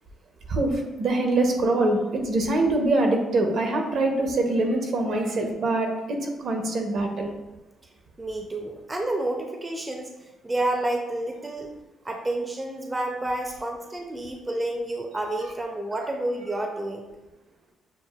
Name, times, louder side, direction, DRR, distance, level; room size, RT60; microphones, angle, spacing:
voice 1, 0.5-7.3, right 2 dB, 65° right, 3 dB, 0.7 m, -24 dB
voice 2, 8.2-11.7 12.0-17.1, right 1 dB, 20° right, 2 dB, 0.5 m, -30 dB
6.6 x 2.4 x 2.3 m, 1.1 s
cardioid pair, 90°, 0 cm